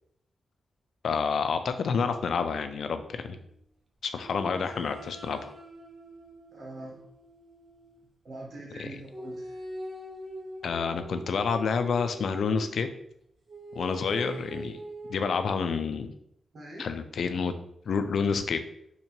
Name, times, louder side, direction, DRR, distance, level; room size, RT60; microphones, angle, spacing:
voice 1, 1.0-3.4 4.0-5.5 8.8-8.9 10.6-12.9 13.8-14.8 15.1-16.1 16.8-17.5 17.9-18.6, left 5 dB, 70° left, 9 dB, 0.4 m, -28 dB
sound 1, 2.1-3.6 4.2-8.1 9.1-12.8 13.5-15.5, right 1 dB, 40° right, 0.8 m, -43 dB
voice 2, 6.5-7.0 8.2-9.6 16.5-16.9, right 1 dB, 60° right, -2 dB, 1.6 m, -43 dB
3.7 x 2.9 x 4.3 m, 0.72 s
cardioid pair, 95°, 0 cm